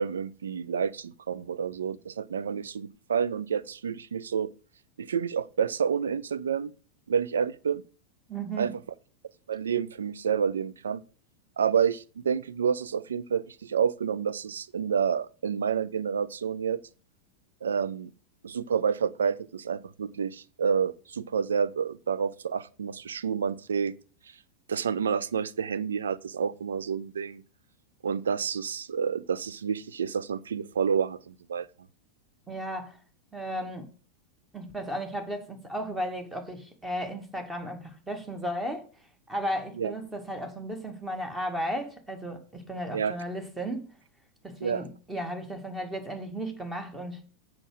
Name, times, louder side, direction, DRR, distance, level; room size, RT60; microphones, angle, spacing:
voice 1, 0.0-4.5 5.0-6.7 7.1-7.8 8.6-8.7 9.5-11.0 11.6-16.8 17.6-18.1 18.4-23.9 24.7-27.4 28.0-31.7 39.8-39.9 42.9-43.2 44.6-44.8, right 7 dB, 70° right, 0.5 m, -29 dB
voice 2, 8.3-8.7 32.5-33.0 33.3-33.9 34.5-38.9 39.3-43.9 44.4-47.2, right 1 dB, 10° right, 1.9 m, -34 dB
7.6 x 6.0 x 6.4 m
figure-of-eight pair, 90°, 0 cm